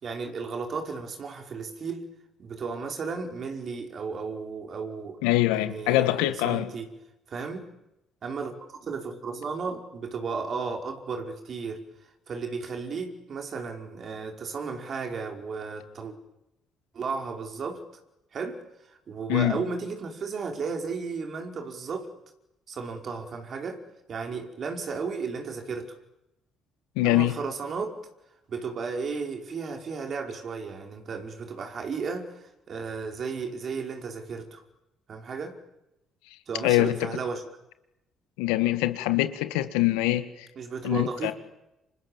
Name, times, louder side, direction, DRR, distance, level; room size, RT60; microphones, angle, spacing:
voice 1, 0.0-2.1 2.4-5.2 5.5-6.9 7.3-7.7 8.2-8.5 8.8-11.8 12.3-16.2 16.9-17.8 18.3-18.6 18.9-22.1 22.7-23.8 24.1-25.9 27.0-28.0 28.5-34.6 35.1-35.6 36.5-37.4 40.6-41.3, right 5 dB, 55° right, 4 dB, 5.1 m, -34 dB
voice 2, 5.2-6.7 19.3-19.6 27.0-27.4 36.6-37.1 38.4-40.5 40.8-41.3, left 16 dB, 85° left, 10 dB, 1.9 m, -24 dB
29.0 x 27.0 x 7.4 m, 0.89 s
supercardioid pair, 60°, 0 cm